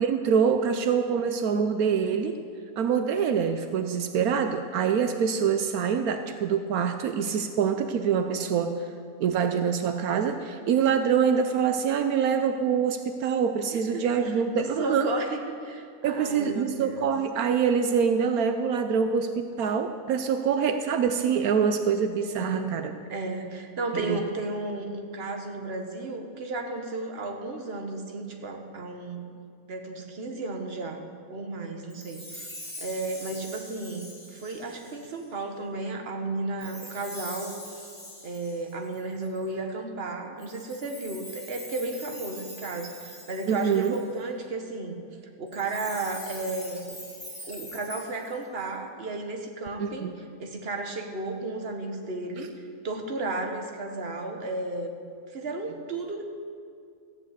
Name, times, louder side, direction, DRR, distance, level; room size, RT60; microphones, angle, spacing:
voice 1, 0.0-2.4 2.8-8.8 9.2-15.1 16.0-22.9 23.9-24.2 43.5-44.0 49.8-50.1, right 7 dB, 80° right, 7 dB, 1.2 m, -25 dB
voice 2, 13.7-17.1 22.4-22.8 23.1-29.3 29.7-32.5 32.8-37.6 38.2-45.0 45.4-46.9 47.4-54.9 55.3-56.3, right 2 dB, 45° right, 3 dB, 1.5 m, -34 dB
Chime, 31.9-35.2 36.6-39.4 40.4-44.2 45.5-48.6, left 1 dB, 25° left, 3.9 m, -43 dB
14.5 x 8.3 x 8.2 m, 2.3 s
omnidirectional pair, 1.5 m